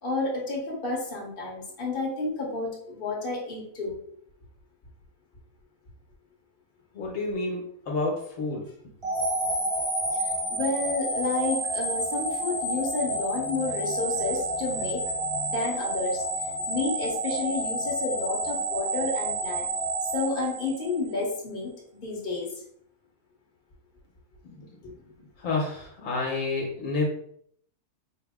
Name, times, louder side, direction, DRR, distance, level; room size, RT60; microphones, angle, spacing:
voice 1, 0.0-4.0 10.1-16.2 16.5-19.6 20.1-21.7 22.0-22.5 24.8-24.9, left 3 dB, 40° left, -3 dB, 1.2 m, -30 dB
voice 2, 6.9-8.7 24.4-24.7 25.2-27.1, left 3 dB, 70° left, -2 dB, 1.3 m, -30 dB
sound 1, 9.0-21.2, right 1 dB, 25° right, 0.9 m, -30 dB
5.1 x 2.1 x 3.5 m, 0.66 s
omnidirectional pair, 1.5 m